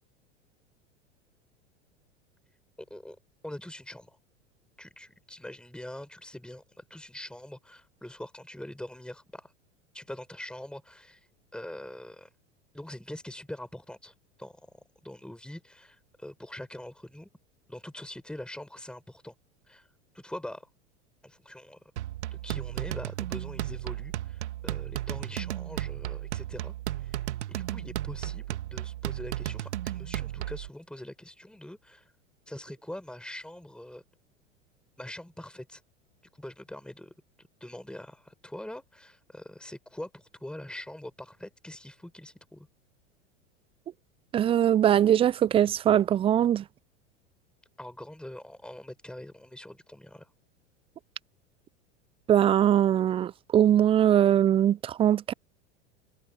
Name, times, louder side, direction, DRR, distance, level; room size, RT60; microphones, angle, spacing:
voice 1, 3.4-4.2 4.8-9.5 9.9-11.3 11.5-12.3 12.7-17.3 17.7-19.3 19.7-19.9 20.1-20.7 21.2-21.8 22.3-27.2 27.5-32.1 32.5-34.0 35.0-35.8 36.4-37.1 37.6-42.7 47.8-50.3, left 1 dB, ahead, 6.0 m, -43 dB
sound 1, 22.0-30.7, right 14 dB, 65° right, 1.8 m, -34 dB
voice 2, 44.3-46.6 52.3-55.3, right 10 dB, 15° right, 0.4 m, -22 dB
figure-of-eight pair, 90°, 36 cm